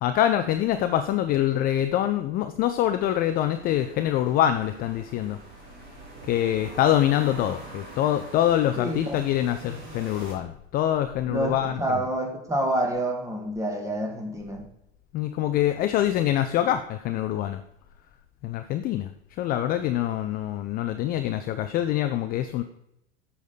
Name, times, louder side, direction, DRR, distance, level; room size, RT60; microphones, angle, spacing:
voice 1, 0.0-5.4 6.3-12.0 15.1-17.6 18.4-19.1 19.4-22.6, left 12 dB, 30° left, 9 dB, 0.4 m, -25 dB
sound 1, 3.0-10.3, right 3 dB, 55° right, 3.4 m, -45 dB
voice 2, 8.8-9.9 11.3-14.6, right 1 dB, 10° right, 2 dB, 1.8 m, -29 dB
7.0 x 7.0 x 4.0 m, 0.80 s
hypercardioid pair, 90°, 34 cm